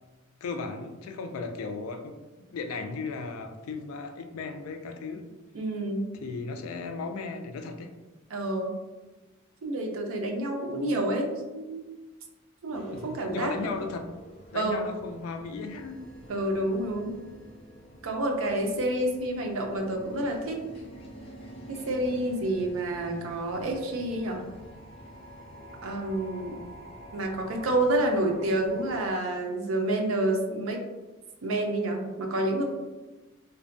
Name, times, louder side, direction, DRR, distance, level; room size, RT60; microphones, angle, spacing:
voice 1, 0.4-2.1 2.5-5.3 6.2-7.9 12.9-14.1 14.5-16.0, left 4 dB, 85° left, 6 dB, 0.3 m, -36 dB
voice 2, 5.5-6.1 8.3-8.8 9.6-11.8 12.6-13.7 14.5-14.9 16.3-17.1 18.0-20.6 21.7-24.5 25.8-26.6 27.1-30.8 31.4-32.6, right 1 dB, 75° right, 2 dB, 0.5 m, -29 dB
sound 1, 12.7-29.2, equal, 30° left, 0.5 m, -47 dB
2.5 x 2.2 x 2.5 m, 1.2 s
head